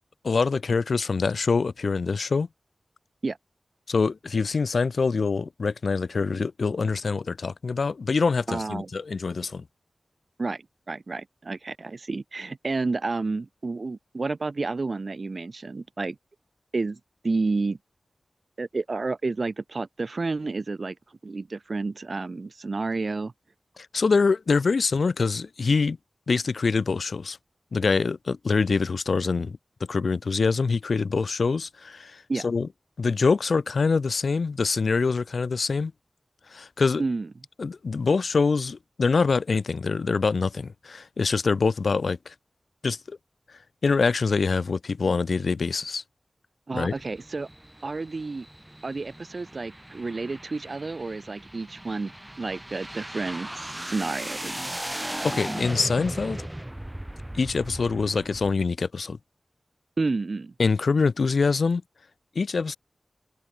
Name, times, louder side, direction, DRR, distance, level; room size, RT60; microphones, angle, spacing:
voice 1, 0.2-2.5 3.9-9.6 23.8-26.0 26.3-27.4 27.7-29.6 29.9-32.7 33.0-35.9 36.5-37.0 37.6-42.3 42.8-43.2 43.8-46.0 46.7-46.9 55.2-56.4 57.3-59.2 60.6-61.8 62.4-62.8, left 4 dB, 75° left, 0.7 m, -25 dB
voice 2, 8.5-8.9 10.4-16.2 16.7-17.8 18.6-21.0 21.2-23.3 32.3-32.5 37.0-37.3 46.7-47.5 47.8-48.5 48.8-52.1 52.4-54.5 60.0-60.5, right 3 dB, 60° right, 3.6 m, -30 dB
sound 1, 46.8-58.5, right 1 dB, 15° right, 4.0 m, -37 dB
open air
wide cardioid pair, 55°, 0 cm